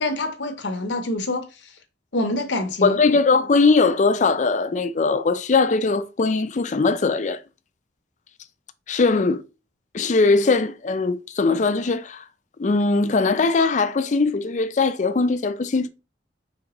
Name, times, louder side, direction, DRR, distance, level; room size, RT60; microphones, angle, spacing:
voice 1, 0.0-1.5 2.1-3.0, left 1 dB, 90° left, 0.8 m, -26 dB
voice 2, 2.8-7.4 8.9-9.4 9.9-12.2 12.6-15.9, left 4 dB, 45° left, 0.4 m, -20 dB
5.0 x 3.5 x 3.0 m
head